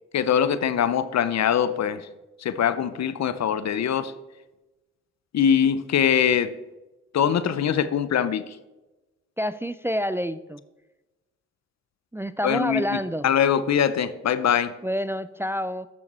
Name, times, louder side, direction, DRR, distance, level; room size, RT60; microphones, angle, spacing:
voice 1, 0.1-2.0 2.4-4.1 5.3-6.5 7.1-8.4 12.4-13.0 13.2-14.7, left 8 dB, 65° left, 14 dB, 0.6 m, -22 dB
voice 2, 9.4-10.6 12.1-13.3 14.8-15.9, equal, 10° right, 14 dB, 0.3 m, -28 dB
8.7 x 6.5 x 4.3 m, 1.1 s
supercardioid pair, 50°, 29 cm